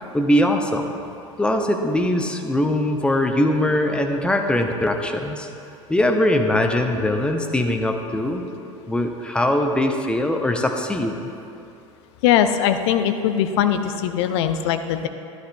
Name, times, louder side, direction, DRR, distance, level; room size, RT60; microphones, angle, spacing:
voice 1, 0.1-1.0 1.4-5.5 5.9-8.4 8.9-11.3, left 1 dB, 5° left, 4 dB, 0.7 m, -21 dB
voice 2, 12.2-15.1, left 9 dB, 55° left, 9 dB, 0.5 m, -20 dB
12.0 x 11.0 x 2.3 m, 2.8 s
figure-of-eight pair, 80°, 17 cm